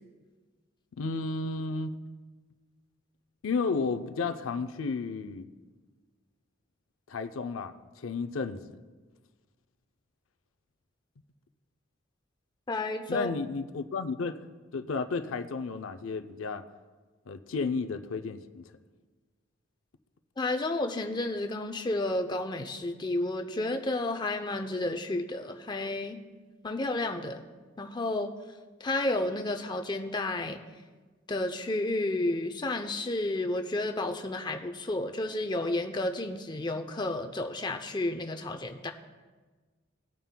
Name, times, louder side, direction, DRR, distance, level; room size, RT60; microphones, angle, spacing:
voice 1, 1.0-1.9 3.4-5.5 7.1-7.7 8.0-8.6 13.1-14.4 14.7-16.6 17.3-18.6, left 4 dB, 90° left, 9 dB, 0.5 m, -32 dB
voice 2, 12.7-13.3 20.4-26.2 26.6-27.4 27.8-28.3 28.8-30.6 31.3-38.9, left 2 dB, 20° left, 6 dB, 0.5 m, -31 dB
18.5 x 9.1 x 2.2 m, 1.3 s
head